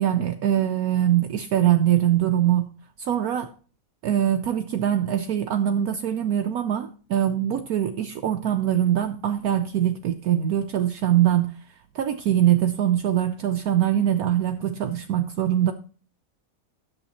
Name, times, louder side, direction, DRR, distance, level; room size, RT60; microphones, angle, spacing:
voice 1, 0.0-2.7 3.0-3.5 4.0-11.5 11.9-15.7, right 11 dB, 70° right, 1.1 m, -23 dB
9.9 x 7.2 x 4.2 m
omnidirectional pair, 1.7 m